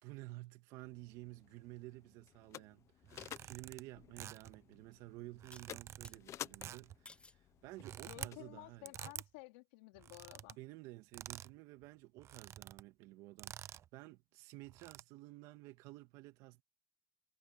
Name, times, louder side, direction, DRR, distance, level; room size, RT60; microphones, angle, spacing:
voice 1, 0.0-2.9 3.3-8.9 10.6-16.6, right 19 dB, 80° right, 2.5 m, -52 dB
sound 1, 0.8-8.8, left 11 dB, 60° left, 1.1 m, -54 dB
sound 2, 3.0-3.8 4.2-4.6 5.3-6.2 6.5-7.0 7.6-8.3 8.9-9.3 10.0-10.6 11.1-11.5 11.8-11.9 12.2-12.8 13.4-13.9 14.6-15.0, right 10 dB, 60° right, 0.7 m, -49 dB
sound 3, 5.5-6.2 7.1-7.5 8.1-8.5, left 3 dB, 20° left, 1.9 m, -59 dB
voice 2, 8.1-10.6, left 24 dB, 90° left, 3.7 m, -53 dB
supercardioid pair, 65°, 6 cm